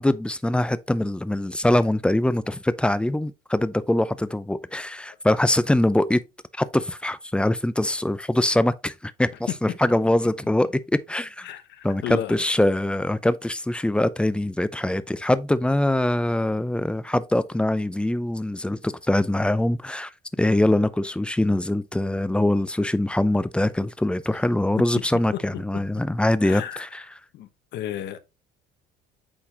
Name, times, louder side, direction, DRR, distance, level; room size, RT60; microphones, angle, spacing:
voice 1, 0.0-6.2 6.6-11.5 11.8-20.1 20.4-27.0, left 1 dB, 5° left, 0.6 m, -23 dB
voice 2, 11.4-12.4 24.3-24.4 26.4-26.9 27.3-28.2, left 10 dB, 60° left, 1.1 m, -33 dB
8.8 x 3.9 x 2.9 m
supercardioid pair, 80°, 20 cm